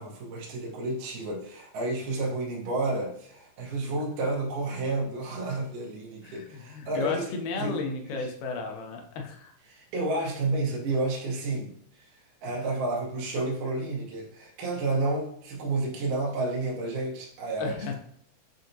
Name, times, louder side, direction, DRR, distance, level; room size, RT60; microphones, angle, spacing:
voice 1, 0.0-7.2 7.6-8.3 9.7-17.9, right 2 dB, 70° right, -3 dB, 2.4 m, -31 dB
voice 2, 6.2-9.5 12.5-12.6 17.6-17.9, left 4 dB, 80° left, 3 dB, 1.9 m, -34 dB
7.5 x 2.7 x 2.6 m, 0.66 s
omnidirectional pair, 4.1 m